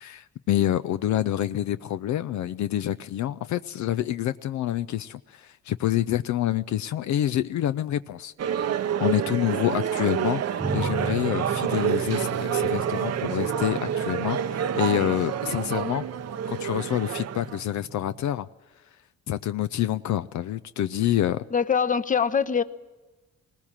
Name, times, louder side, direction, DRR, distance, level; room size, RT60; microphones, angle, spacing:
voice 1, 0.0-16.0 16.5-18.5 19.3-21.4, left 12 dB, 70° left, 12 dB, 0.6 m, -27 dB
sound 1, 8.4-17.6, right 9 dB, 55° right, 0.8 m, -28 dB
sound 2, 10.6-18.3, right 4 dB, 20° right, 0.8 m, -37 dB
voice 2, 21.5-22.6, left 7 dB, 25° left, 12 dB, 0.9 m, -23 dB
19.5 x 19.5 x 7.4 m, 1.2 s
cardioid pair, 90°, 30 cm